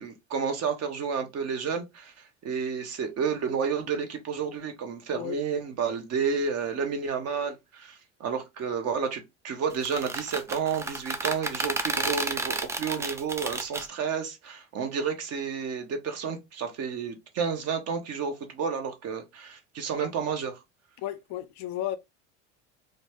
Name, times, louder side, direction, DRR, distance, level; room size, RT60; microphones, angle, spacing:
voice 1, 0.0-2.1 2.4-20.6, right 6 dB, 45° right, 0.9 m, -31 dB
sound 1, 9.7-13.9, right 3 dB, 10° right, 0.3 m, -31 dB
voice 2, 21.0-22.0, left 12 dB, 50° left, 0.5 m, -33 dB
2.5 x 2.2 x 3.4 m
hypercardioid pair, 75°, 35 cm